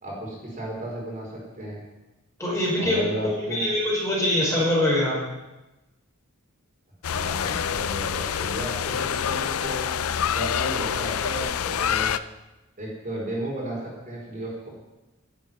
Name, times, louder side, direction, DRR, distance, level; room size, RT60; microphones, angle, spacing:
voice 1, 0.0-1.8 2.8-3.7 7.1-9.9 10.3-12.1 12.8-14.7, right 1 dB, 40° right, -4 dB, 4.8 m, -34 dB
voice 2, 2.4-5.2, left 1 dB, 15° left, -6 dB, 5.2 m, -24 dB
sound 1, 7.0-12.2, left 8 dB, 80° left, 0.5 m, -26 dB
11.5 x 8.4 x 9.3 m, 1.0 s
head